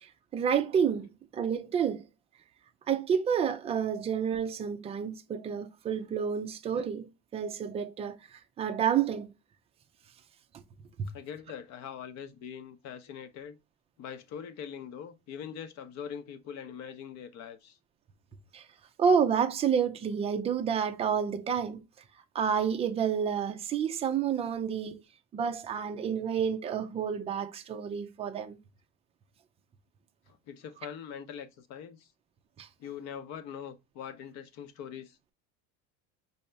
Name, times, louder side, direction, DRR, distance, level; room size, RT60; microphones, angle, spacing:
voice 1, 0.0-1.1 1.3-2.0 2.9-9.3 18.5-18.7 19.0-21.8 22.3-25.0 25.3-28.6 32.6-32.7, right 7 dB, 20° right, 0.4 m, -29 dB
voice 2, 11.1-13.6 14.0-17.8 30.3-32.1 32.8-35.3, left 8 dB, 50° left, 0.7 m, -42 dB
5.5 x 2.8 x 3.3 m
cardioid pair, 140°, 36 cm